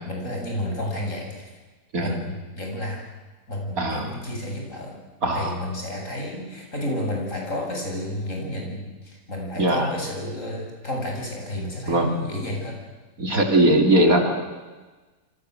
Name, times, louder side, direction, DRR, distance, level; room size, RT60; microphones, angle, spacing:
voice 1, 0.1-1.6 2.0-3.0 3.5-5.0 5.3-12.8, left 1 dB, 45° left, 0 dB, 8.1 m, -31 dB
voice 2, 3.8-4.1 5.2-5.6 9.6-9.9 11.9-12.1 13.2-14.4, right 1 dB, 55° right, 4 dB, 3.7 m, -20 dB
28.5 x 26.0 x 8.0 m, 1.2 s
omnidirectional pair, 1.8 m